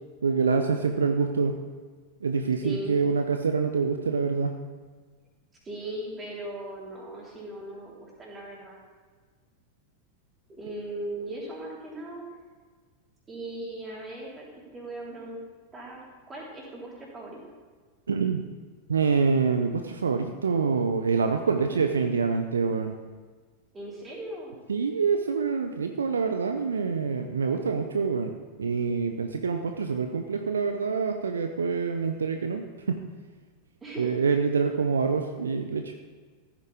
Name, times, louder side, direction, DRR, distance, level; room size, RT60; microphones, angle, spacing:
voice 1, 0.2-1.6 2.2-4.6 18.1-18.4 18.9-22.9 24.7-33.0 34.0-36.1, right 5 dB, 70° right, 6 dB, 0.7 m, -26 dB
voice 2, 2.6-3.0 5.6-8.8 10.5-12.2 13.3-14.5 14.7-15.4 15.7-16.0 16.3-17.4 21.5-21.8 23.7-24.6 33.8-34.1, right 1 dB, 20° right, -4 dB, 3.9 m, -38 dB
15.0 x 9.0 x 3.6 m, 1.5 s
figure-of-eight pair, 90°, 0 cm